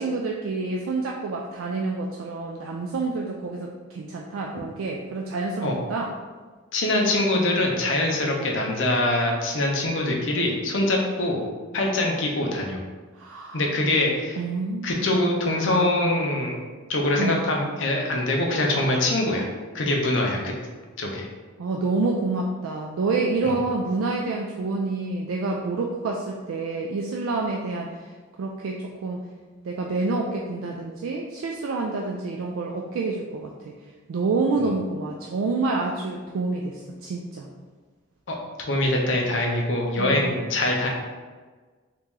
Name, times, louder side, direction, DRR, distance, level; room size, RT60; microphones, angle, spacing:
voice 1, 0.0-6.1 13.1-13.7 14.4-15.1 17.2-17.4 21.6-28.1 28.4-29.2 29.6-33.7 34.1-37.5 40.0-40.3, right 3 dB, 85° right, 0 dB, 0.3 m, -28 dB
voice 2, 6.7-11.4 11.7-12.8 13.5-14.4 14.8-16.6 16.9-19.4 19.7-20.5 21.0-21.3 23.4-23.5 38.3-40.9, left 1 dB, 65° left, 0 dB, 0.7 m, -24 dB
3.0 x 2.9 x 3.6 m, 1.4 s
head